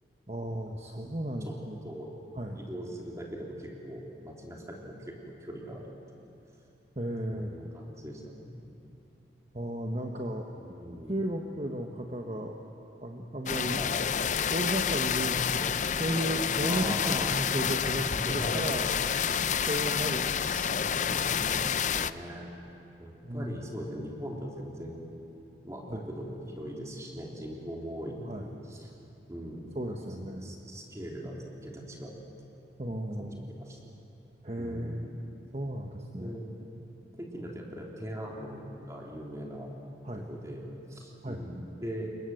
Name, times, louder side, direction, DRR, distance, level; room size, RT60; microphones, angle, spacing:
voice 1, 0.3-1.8 2.3-2.6 7.0-7.6 9.5-10.5 11.1-12.6 13.0-13.8 14.5-18.9 19.7-20.3 21.0-21.7 23.2-23.5 25.9-26.0 28.2-28.5 29.7-30.5 32.8-33.5 34.4-35.2 35.5-36.4 40.0-40.3 41.2-41.4, right 1 dB, 35° right, 1 dB, 1.4 m, -34 dB
voice 2, 2.5-5.9 7.3-8.7 10.5-11.2 13.6-14.0 16.7-17.3 18.0-18.6 20.3-22.5 23.0-25.1 25.6-28.9 29.3-31.4 31.6-32.2 32.5-32.6 33.2-33.9 34.6-35.2 36.2-36.5 37.1-39.7 40.1-42.1, equal, 15° right, -2 dB, 3.5 m, -41 dB
sound 1, 13.5-22.1, left 7 dB, 40° left, 0.5 m, -29 dB
28.0 x 23.0 x 7.9 m, 2.9 s
head